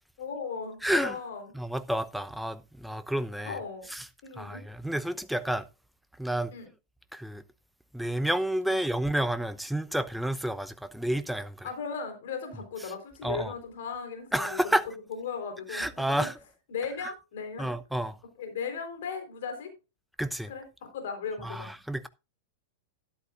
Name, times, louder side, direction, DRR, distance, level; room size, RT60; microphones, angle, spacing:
voice 1, 0.2-1.5 3.4-3.9 4.2-4.6 6.5-6.7 8.7-8.8 11.6-16.3 16.7-17.7 18.4-19.7 20.5-21.7, left 5 dB, 65° left, 4.0 m, -37 dB
voice 2, 0.8-1.2 1.5-3.6 3.9-4.1 4.4-5.7 6.2-6.5 7.1-7.4 7.9-11.7 13.2-13.5 14.3-14.8 15.7-16.3 17.6-18.2 20.2-20.5 21.4-22.1, right 1 dB, ahead, 0.8 m, -30 dB
12.5 x 11.0 x 2.5 m
hypercardioid pair, 100°, 0 cm